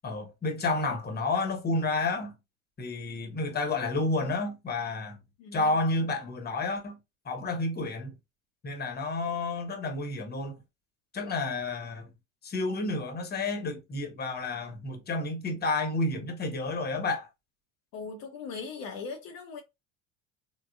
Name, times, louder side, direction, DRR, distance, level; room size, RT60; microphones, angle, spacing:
voice 1, 0.0-2.3 2.8-5.2 5.5-7.0 7.2-8.1 8.6-10.6 11.1-12.1 12.4-17.3, left 2 dB, 25° left, 1.0 m, -30 dB
voice 2, 5.4-5.7 17.9-19.6, left 5 dB, 55° left, 0.7 m, -39 dB
3.6 x 2.1 x 2.2 m
hypercardioid pair, 70°, 42 cm